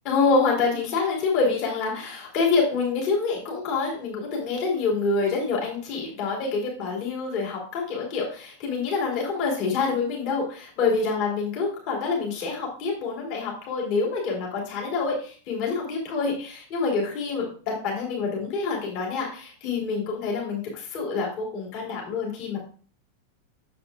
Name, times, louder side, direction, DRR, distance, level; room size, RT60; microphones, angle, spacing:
voice 1, 0.0-22.6, left 4 dB, 45° left, -1 dB, 3.3 m, -26 dB
10.0 x 7.4 x 2.4 m, 0.40 s
figure-of-eight pair, 90°, 0 cm